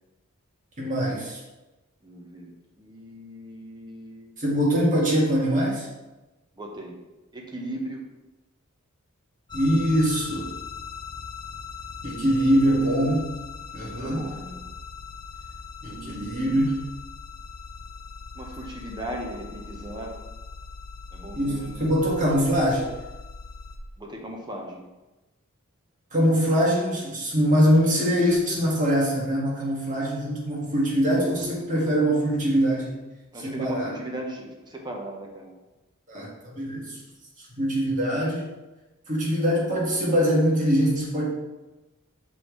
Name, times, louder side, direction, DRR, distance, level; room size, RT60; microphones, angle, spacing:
voice 1, 0.8-1.4 4.4-5.9 9.5-10.5 12.0-13.2 13.7-14.3 15.8-16.8 21.4-22.9 26.1-32.9 33.4-33.9 36.1-37.0 37.6-38.5 39.1-41.3, equal, 35° right, -4 dB, 1.8 m, -23 dB
voice 2, 2.0-4.3 6.5-7.0 7.3-8.0 13.7-14.7 15.8-16.6 18.3-20.1 21.1-21.9 24.0-24.9 33.3-35.5, right 1 dB, 20° right, 1 dB, 0.9 m, -37 dB
sound 1, 9.5-23.8, left 5 dB, 20° left, 0.5 m, -40 dB
6.0 x 5.1 x 3.1 m, 1.1 s
head